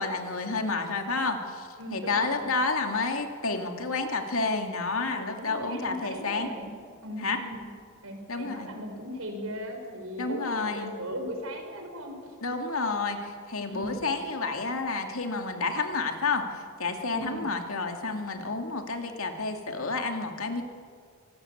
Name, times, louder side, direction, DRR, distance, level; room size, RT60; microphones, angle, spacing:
voice 1, 0.0-6.5 7.2-7.4 8.3-8.7 10.2-10.9 12.4-20.6, left 3 dB, 75° left, 4 dB, 2.5 m, -30 dB
voice 2, 1.8-2.6 5.4-6.7 7.0-7.7 8.0-12.3 13.6-14.1 17.2-17.5, equal, 85° right, 4 dB, 5.3 m, -38 dB
25.5 x 18.5 x 8.7 m, 2.1 s
head